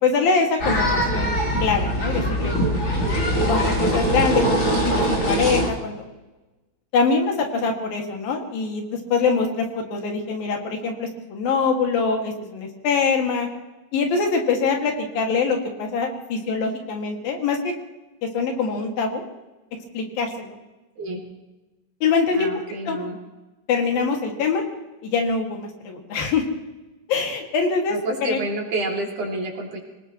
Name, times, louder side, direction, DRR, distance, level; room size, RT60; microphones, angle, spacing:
voice 1, 0.0-1.4 1.6-2.6 3.5-6.0 6.9-13.5 13.9-17.7 18.2-19.2 19.9-20.6 22.0-22.5 22.9-23.0 23.7-24.6 25.0-26.4 27.1-28.4, left 5 dB, 80° left, 2 dB, 3.9 m, -24 dB
sound 1, 0.6-5.7, equal, 35° left, 3.7 m, -22 dB
voice 2, 22.3-23.2 27.9-29.8, right 2 dB, 60° right, -1 dB, 4.3 m, -28 dB
26.0 x 18.5 x 3.1 m, 1.1 s
omnidirectional pair, 4.0 m